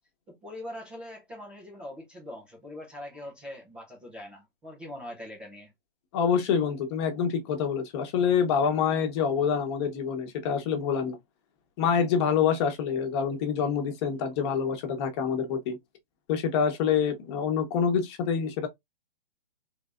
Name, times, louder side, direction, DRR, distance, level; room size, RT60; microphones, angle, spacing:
voice 1, 0.3-5.7, left 1 dB, 5° right, 0.3 m, -42 dB
voice 2, 6.1-11.2 11.8-15.8 16.3-18.7, left 7 dB, 30° left, 0.9 m, -26 dB
3.3 x 3.2 x 2.4 m
hypercardioid pair, 145°, 29 cm